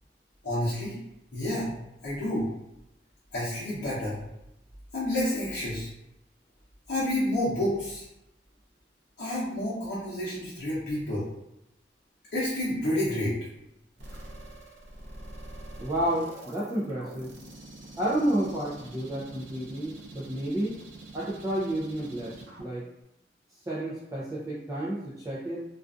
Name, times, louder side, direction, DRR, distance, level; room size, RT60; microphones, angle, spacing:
voice 1, 0.4-1.0 1.3-1.7 2.0-2.5 3.3-4.2 4.9-5.9 6.9-8.1 9.2-11.3 12.3-13.3, left 1 dB, 80° left, -9 dB, 0.7 m, -29 dB
sound 1, 14.0-23.0, right 2 dB, 85° right, 0.6 m, -46 dB
voice 2, 15.8-17.3 18.0-20.8 21.1-22.8 23.7-25.6, right 1 dB, 20° right, -8 dB, 0.4 m, -31 dB
2.5 x 2.3 x 2.3 m, 0.86 s
head